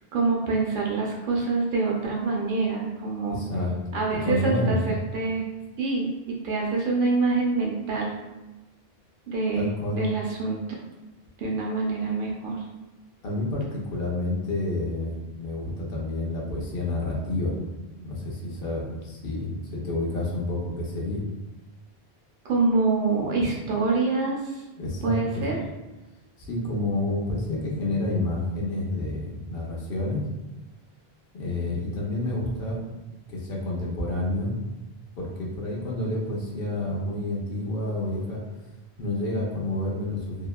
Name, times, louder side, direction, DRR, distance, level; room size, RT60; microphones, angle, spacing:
voice 1, 0.1-3.4 3.9-5.4 5.8-8.1 9.3-9.7 9.9-10.8 11.4-12.6 22.5-24.5 25.0-25.6, right 3 dB, 65° right, -2 dB, 0.7 m, -26 dB
voice 2, 3.3-3.7 4.2-4.8 9.5-10.0 13.2-17.6 18.0-21.2 24.8-25.4 26.4-30.2 31.3-32.8 33.3-34.5 35.2-38.4 39.0-40.5, left 2 dB, 70° left, -3 dB, 0.8 m, -29 dB
2.8 x 2.1 x 2.2 m, 1.1 s
omnidirectional pair, 1.1 m